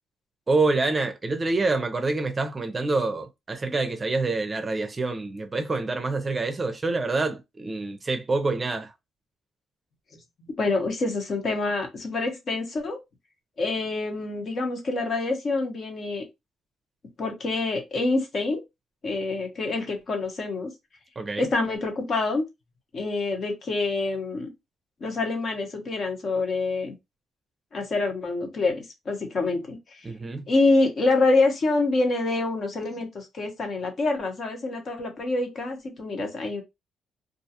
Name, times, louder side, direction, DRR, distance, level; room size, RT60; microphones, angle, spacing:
voice 1, 0.5-8.9 21.2-21.5 30.0-30.4, right 3 dB, 30° right, 0.5 m, -26 dB
voice 2, 10.6-13.0 13.6-16.2 17.2-18.6 19.0-20.7 21.4-22.5 22.9-24.5 25.0-26.9 27.7-30.1 30.5-36.6, left 3 dB, 50° left, 1.0 m, -26 dB
2.4 x 2.3 x 2.8 m
cardioid pair, 90°, 0 cm